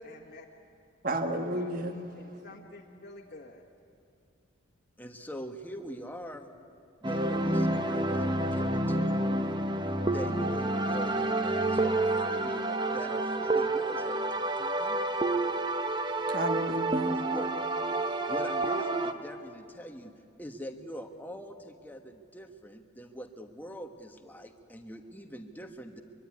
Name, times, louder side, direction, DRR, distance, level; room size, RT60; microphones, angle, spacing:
voice 1, 0.0-0.4 1.4-3.6, left 2 dB, 45° left, -2 dB, 1.7 m, -49 dB
voice 2, 1.0-2.6 16.2-17.2, right 1 dB, 40° right, 5 dB, 1.6 m, -33 dB
voice 3, 5.0-6.5 7.0-9.3 9.8-15.1 17.3-17.5 18.3-20.1 20.4-26.0, equal, 10° left, 5 dB, 1.4 m, -43 dB
sound 1, 7.0-19.1, right 2 dB, 20° right, 1.0 m, -29 dB
24.0 x 23.5 x 9.8 m, 2.6 s
head